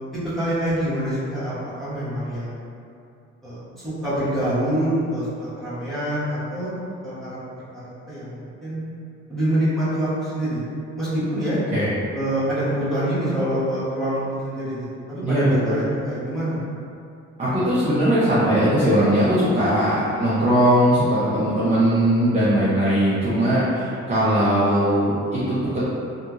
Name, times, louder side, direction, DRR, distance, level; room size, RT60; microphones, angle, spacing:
voice 1, 0.1-2.6 3.4-6.7 7.0-7.4 7.7-8.8 9.3-10.6 11.0-11.6 12.1-16.6, right 1 dB, ahead, -14 dB, 1.4 m, -26 dB
voice 2, 15.2-15.8 17.4-25.8, right 1 dB, 25° right, -12 dB, 0.7 m, -19 dB
2.8 x 2.5 x 2.4 m, 2.6 s
cardioid pair, 90°, 30 cm